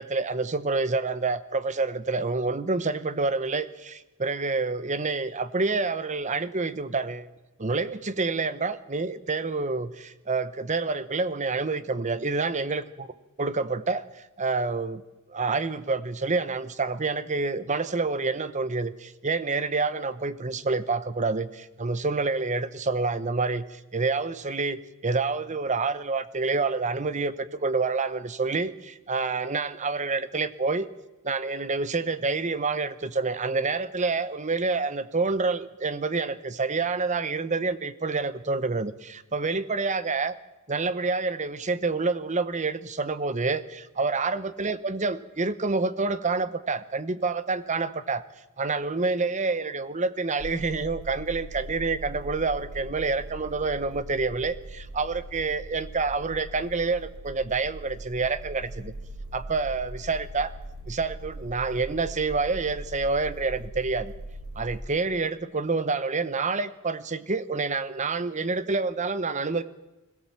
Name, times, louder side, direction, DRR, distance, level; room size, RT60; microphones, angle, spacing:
voice 1, 0.0-7.3 7.6-13.1 13.4-15.0 15.3-30.9 31.2-40.3 40.7-48.2 48.6-58.9 59.3-60.5 60.9-64.1 64.6-69.6, right 3 dB, 35° right, 14 dB, 0.8 m, -28 dB
sound 1, 50.4-64.8, right 1 dB, 85° right, 5.0 m, -40 dB
22.0 x 16.5 x 7.4 m, 1.0 s
head